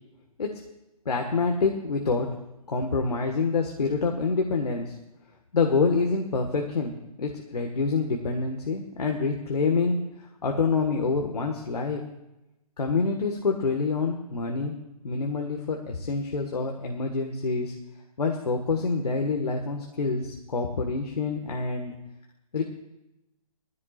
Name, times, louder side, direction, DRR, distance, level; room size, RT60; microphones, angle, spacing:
voice 1, 1.0-2.3 2.7-4.9 5.5-10.0 10.4-12.0 12.8-14.7 15.0-17.7 18.2-21.9 22.5-22.6, left 4 dB, 80° left, 2 dB, 1.7 m, -26 dB
19.5 x 14.5 x 2.5 m, 0.94 s
hypercardioid pair, 140°, 20 cm